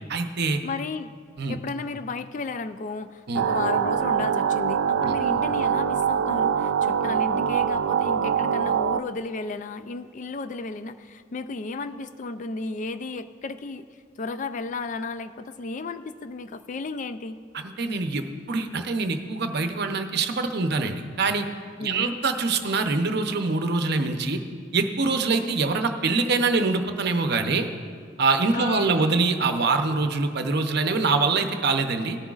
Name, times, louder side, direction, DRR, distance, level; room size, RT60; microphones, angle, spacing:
voice 1, 0.1-0.6 1.4-1.6 3.3-3.4 5.0-5.1 17.5-21.5 21.8-24.4 24.7-27.7 28.2-32.2, right 3 dB, 60° right, 6 dB, 0.7 m, -24 dB
voice 2, 0.6-1.1 1.5-13.8 14.2-17.4 21.8-22.2 28.5-29.1, left 3 dB, 40° left, 12 dB, 0.4 m, -33 dB
sound 1, 3.3-9.0, right 7 dB, 85° right, 0.3 m, -24 dB
17.5 x 10.0 x 2.4 m, 2.1 s
head